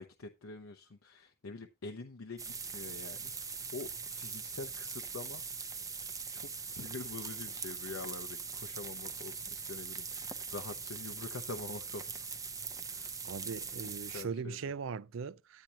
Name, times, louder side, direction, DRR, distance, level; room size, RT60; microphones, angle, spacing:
voice 1, 0.0-5.4 6.3-12.3 12.9-13.2 14.1-14.7, left 3 dB, 85° left, 0.8 m, -45 dB
sound 1, 2.4-14.2, right 5 dB, 15° right, 0.6 m, -42 dB
voice 2, 13.3-15.6, right 5 dB, 65° right, 0.4 m, -40 dB
10.0 x 9.1 x 2.9 m
head